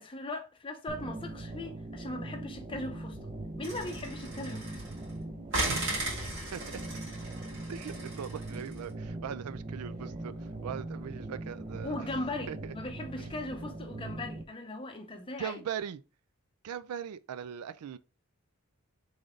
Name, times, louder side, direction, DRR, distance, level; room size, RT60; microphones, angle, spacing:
voice 1, 0.0-3.3 3.6-4.8 11.8-15.6, left 2 dB, 25° left, 0.6 m, -39 dB
sound 1, 0.9-14.4, right 2 dB, 20° right, 0.5 m, -41 dB
sound 2, 3.6-5.1 5.5-8.8, right 2 dB, 55° right, 1.8 m, -36 dB
voice 2, 7.7-12.1 12.5-12.7 13.2-13.3 15.4-16.0 16.6-18.0, right 8 dB, 90° right, 0.4 m, -40 dB
3.9 x 3.2 x 3.6 m
head